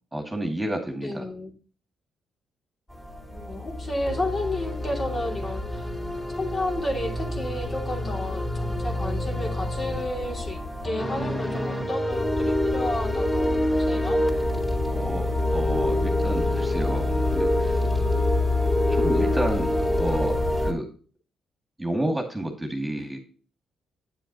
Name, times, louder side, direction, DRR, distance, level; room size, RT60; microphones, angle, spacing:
voice 1, 0.1-1.2 14.9-17.8 18.9-19.7 20.0-20.9 21.8-23.2, right 1 dB, 10° right, 2 dB, 2.3 m, -30 dB
voice 2, 1.0-1.5 3.3-5.9 6.4-14.2, left 1 dB, 35° left, 1 dB, 2.8 m, -32 dB
sound 1, 2.9-20.7, left 1 dB, 15° left, 3.5 m, -26 dB
9.5 x 7.1 x 3.0 m, 0.38 s
cardioid pair, 90°, 0 cm